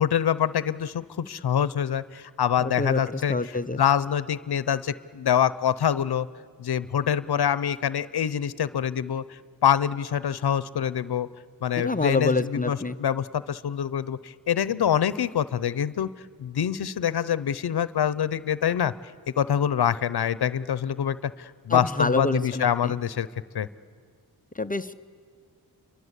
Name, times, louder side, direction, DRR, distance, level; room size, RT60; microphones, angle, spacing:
voice 1, 0.0-3.3 3.8-6.3 6.6-11.3 11.6-16.1 16.4-18.9 19.4-23.3 23.5-23.7, left 9 dB, 75° left, 16 dB, 0.8 m, -25 dB
voice 2, 2.6-3.8 11.8-13.0 21.7-22.9 24.5-24.9, left 3 dB, 20° left, 10 dB, 0.6 m, -27 dB
28.5 x 23.0 x 8.2 m, 2.1 s
wide cardioid pair, 115°, 39 cm